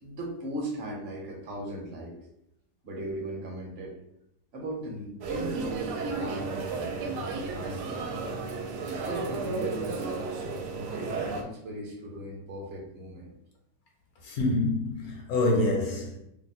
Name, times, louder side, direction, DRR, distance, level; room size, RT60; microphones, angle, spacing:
voice 1, 0.0-2.3 2.8-4.0 4.5-8.3 8.9-10.1 10.7-13.3, right 1 dB, 50° right, 0.9 m, -38 dB
sound 1, 5.2-11.4, right 4 dB, 80° right, 1.2 m, -33 dB
voice 2, 14.2-16.2, left 2 dB, 70° left, 1.1 m, -26 dB
2.9 x 2.1 x 4.1 m
omnidirectional pair, 1.8 m